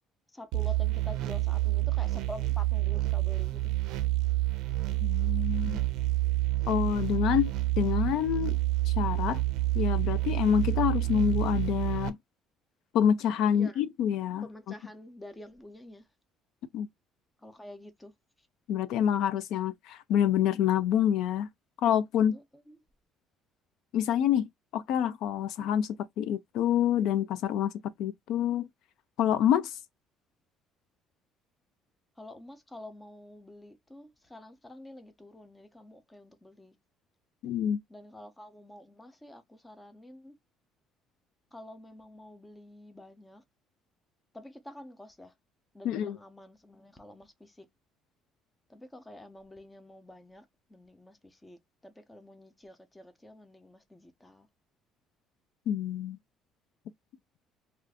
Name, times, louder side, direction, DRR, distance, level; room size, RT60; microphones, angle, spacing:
voice 1, 0.3-3.6 13.5-13.8 14.4-16.0 17.4-18.1 22.3-22.4 22.7-22.8 32.2-36.7 37.9-40.3 41.5-43.4 44.3-45.3 45.7-47.7 48.7-50.4 50.7-54.5, left 1 dB, 10° left, 0.5 m, -48 dB
sound 1, 0.5-12.1, right 17 dB, 80° right, 0.4 m, -28 dB
voice 2, 5.0-5.8 6.7-8.6 8.9-9.4 9.7-12.2 12.9-14.8 16.7-16.9 18.7-21.5 21.8-22.3 23.9-25.9 26.2-27.7 28.0-28.7 29.2-29.8 37.4-37.8 45.8-46.2 55.7-56.2, left 9 dB, 70° left, 0.3 m, -27 dB
2.5 x 2.4 x 3.3 m
cardioid pair, 150°, 0 cm